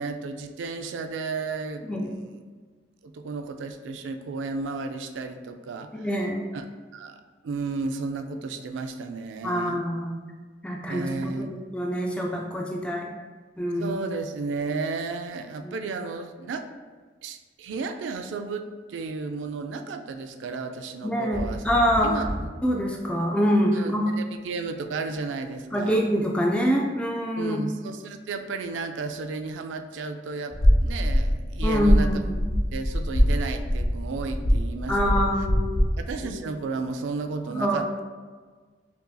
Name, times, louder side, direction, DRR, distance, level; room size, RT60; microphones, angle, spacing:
voice 1, 0.0-1.9 3.0-6.1 6.5-6.6 6.9-9.8 10.9-11.5 13.8-16.7 17.2-21.7 22.0-22.5 23.7-26.0 27.4-32.1 32.7-35.1 36.0-38.0, right 4 dB, 90° right, 8 dB, 0.3 m, -33 dB
voice 2, 6.0-6.5 9.4-10.2 10.6-13.1 13.6-14.0 15.6-15.7 21.0-22.2 22.6-24.1 25.7-27.6 31.6-32.6 34.9-35.7 37.5-37.8, equal, 5° left, -1 dB, 0.3 m, -25 dB
sound 1, 21.3-22.6 24.2-24.8, right 1 dB, 50° right, 1.0 m, -33 dB
sound 2, 30.5-35.9, equal, 45° left, 0.7 m, -23 dB
5.4 x 2.6 x 2.2 m, 1.5 s
head